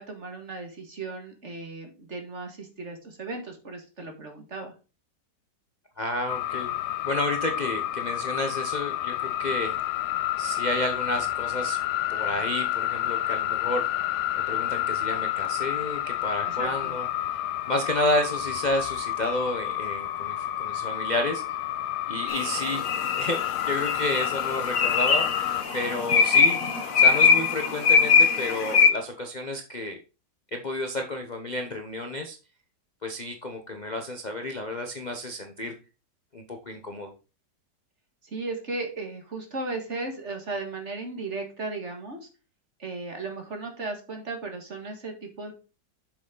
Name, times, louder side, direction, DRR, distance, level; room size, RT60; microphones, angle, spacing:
voice 1, 0.0-4.7 16.5-16.9 38.3-42.3 42.8-45.5, right 3 dB, 40° right, 4 dB, 2.0 m, -36 dB
voice 2, 6.0-6.7 7.0-9.8 10.4-11.8 12.1-13.9 14.5-17.4 17.7-21.4 22.1-22.8 23.1-25.3 25.7-26.6 26.9-30.0 30.5-32.4 33.0-35.7 36.3-37.1, left 1 dB, 35° left, 4 dB, 0.8 m, -31 dB
sound 1, 6.3-25.6, left 13 dB, 75° left, 1.1 m, -30 dB
sound 2, 22.3-28.9, left 5 dB, 55° left, 1.4 m, -22 dB
7.3 x 6.2 x 3.8 m, 0.32 s
omnidirectional pair, 1.9 m